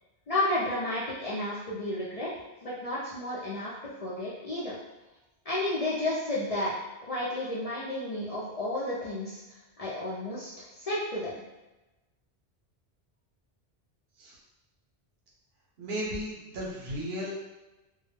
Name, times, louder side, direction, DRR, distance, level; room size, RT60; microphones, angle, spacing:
voice 1, 0.3-2.3 2.6-4.7 5.5-6.7 7.1-9.4 9.8-11.4, left 1 dB, 50° left, -8 dB, 0.4 m, -32 dB
voice 2, 15.8-17.4, equal, 70° right, -5 dB, 0.9 m, -35 dB
2.2 x 2.0 x 3.1 m, 1.0 s
omnidirectional pair, 1.0 m